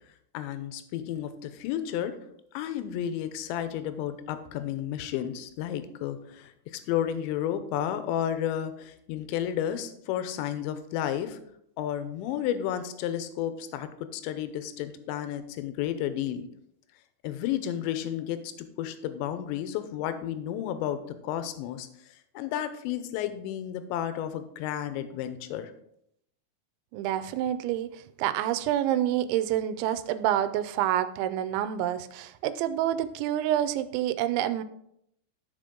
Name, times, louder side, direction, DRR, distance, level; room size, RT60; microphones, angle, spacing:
voice 1, 0.3-2.2 2.5-11.4 11.8-16.4 17.2-25.7, left 10 dB, 80° left, 10 dB, 2.9 m, -32 dB
voice 2, 26.9-34.6, right 11 dB, 85° right, 12 dB, 2.9 m, -28 dB
13.0 x 5.1 x 3.7 m, 0.75 s
omnidirectional pair, 5.3 m